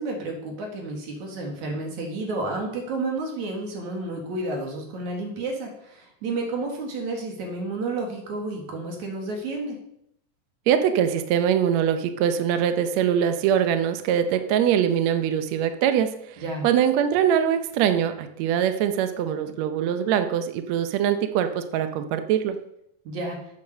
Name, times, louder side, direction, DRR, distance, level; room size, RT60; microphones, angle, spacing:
voice 1, 0.0-9.8 16.4-16.6 23.0-23.4, right 2 dB, 60° right, 1 dB, 3.3 m, -31 dB
voice 2, 10.7-16.1 16.6-22.6, right 9 dB, 85° right, 9 dB, 1.5 m, -23 dB
9.0 x 7.3 x 6.5 m, 0.76 s
omnidirectional pair, 4.1 m